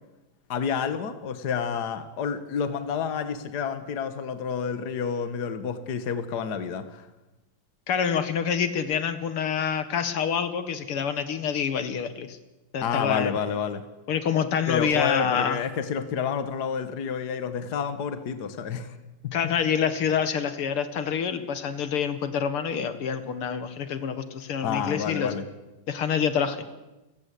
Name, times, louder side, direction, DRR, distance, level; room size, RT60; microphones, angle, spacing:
voice 1, 0.5-7.1 12.8-13.8 14.7-19.0 19.2-19.3 24.6-25.4, left 6 dB, 50° left, 11 dB, 1.9 m, -29 dB
voice 2, 7.9-12.4 12.7-13.3 14.1-15.6 19.3-25.3 25.9-26.7, left 7 dB, 80° left, 11 dB, 2.4 m, -27 dB
29.0 x 16.0 x 8.4 m, 1.1 s
omnidirectional pair, 2.4 m